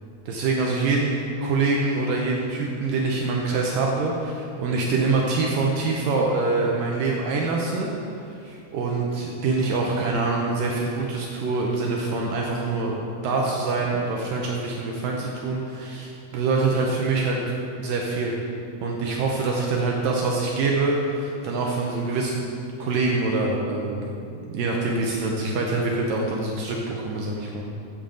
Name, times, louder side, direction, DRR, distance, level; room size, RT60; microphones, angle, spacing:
voice 1, 0.3-7.9 8.3-13.0 13.2-17.4 17.8-18.3 18.8-22.4 22.8-24.0 24.4-27.6, right 3 dB, 70° right, -1 dB, 2.3 m, -25 dB
14.0 x 8.8 x 3.9 m, 2.6 s
omnidirectional pair, 4.5 m